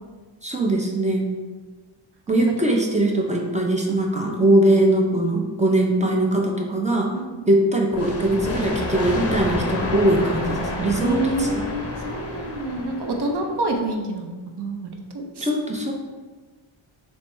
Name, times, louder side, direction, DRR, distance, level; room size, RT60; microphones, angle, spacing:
voice 1, 0.4-1.3 2.3-7.1 7.5-11.6 15.4-15.9, right 1 dB, 15° right, 0 dB, 0.5 m, -21 dB
voice 2, 7.1-7.5 11.0-15.5, right 2 dB, 55° right, 3 dB, 0.7 m, -28 dB
sound 1, 7.9-13.5, left 2 dB, 30° left, 0.6 m, -29 dB
3.2 x 3.1 x 4.5 m, 1.3 s
wide cardioid pair, 120°, 50 cm